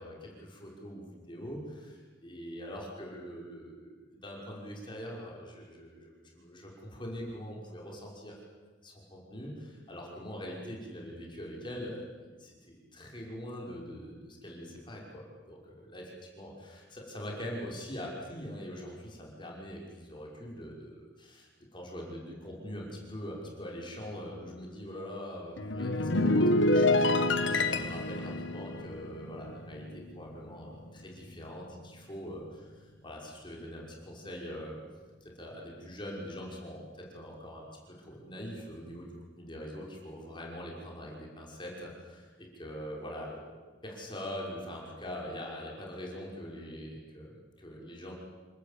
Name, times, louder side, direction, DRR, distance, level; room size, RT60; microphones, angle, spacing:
voice 1, 0.0-8.4 8.8-34.8 35.2-48.1, equal, 25° left, -2 dB, 5.8 m, -43 dB
sound 1, 25.6-30.2 30.5-30.8, left 2 dB, 85° left, 1.5 m, -27 dB
27.5 x 19.0 x 8.6 m, 1.3 s
head